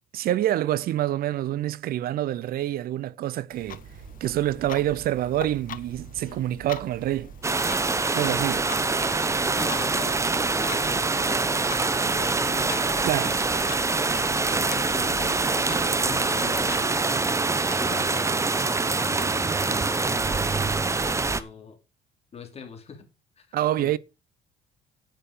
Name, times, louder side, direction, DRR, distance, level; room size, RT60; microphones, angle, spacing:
voice 1, 0.1-3.8 4.2-7.3 8.1-8.7 13.0-13.4 23.5-24.0, right 13 dB, 65° right, 0.7 m, -26 dB
Clock, 3.5-17.9, left 10 dB, 55° left, 1.1 m, -44 dB
sound 1, 3.6-17.1, right 6 dB, 45° right, 2.2 m, -45 dB
sound 2, 7.4-21.4, right 3 dB, 15° right, 0.8 m, -25 dB
voice 2, 9.5-13.4 13.7-13.9 14.7-17.4 17.8-21.8 22.3-23.1 23.4-23.9, left 6 dB, 40° left, 3.0 m, -44 dB
9.1 x 9.0 x 5.1 m
cardioid pair, 110°, 17 cm